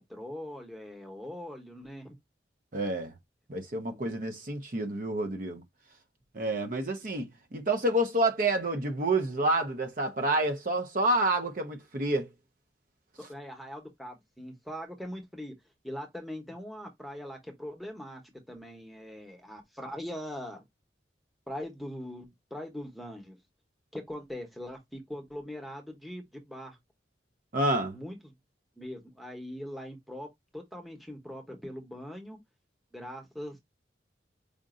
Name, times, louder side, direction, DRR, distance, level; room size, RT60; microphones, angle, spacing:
voice 1, 0.0-2.1 3.9-4.1 13.2-15.5 15.8-18.2 18.5-20.6 21.5-23.4 23.9-26.8 27.9-28.3 28.8-30.3 30.5-32.4 32.9-33.6, equal, ahead, 0.9 m, -41 dB
voice 2, 2.7-3.1 3.5-5.6 6.3-12.3 27.5-28.0, right 1 dB, 50° right, 0.7 m, -28 dB
5.0 x 2.6 x 2.5 m
head